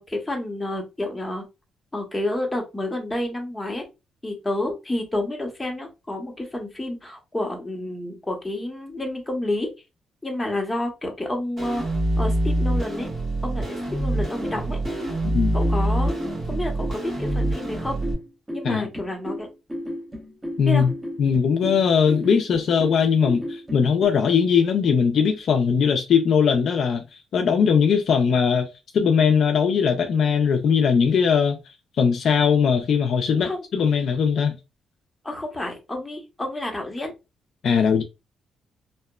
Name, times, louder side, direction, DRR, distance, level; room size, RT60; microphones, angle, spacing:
voice 1, 0.0-1.4 1.9-3.8 4.2-9.7 10.2-11.8 12.2-13.1 13.4-14.8 15.5-16.1 16.5-18.0 18.5-19.5 20.6-20.8 33.4-33.6 35.2-37.1, left 1 dB, 15° left, 0.9 m, -29 dB
sound 1, 11.6-18.1, right 1 dB, 50° right, 1.4 m, -25 dB
sound 2, 14.1-24.1, equal, 10° right, 1.0 m, -34 dB
voice 2, 20.6-20.9 21.2-27.0 27.3-28.7 28.9-31.6 32.0-34.5 37.6-38.0, left 6 dB, 65° left, 0.4 m, -20 dB
2.8 x 2.1 x 2.2 m
cardioid pair, 80°, 0 cm